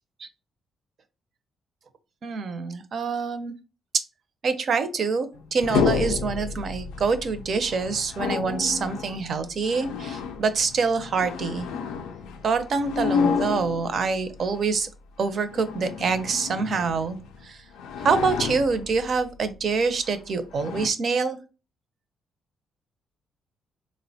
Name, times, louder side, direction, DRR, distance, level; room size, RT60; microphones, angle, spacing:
voice 1, 2.2-3.5 4.4-11.7 12.4-14.9 15.2-17.2 17.4-17.6 18.0-21.4, right 4 dB, 55° right, 11 dB, 0.5 m, -26 dB
sound 1, 5.3-14.6 15.3-17.5 17.7-19.3 20.0-20.2 20.5-20.9, left 6 dB, 90° left, 0.3 m, -30 dB
3.7 x 2.1 x 2.6 m, 0.32 s
cardioid pair, 90°, 0 cm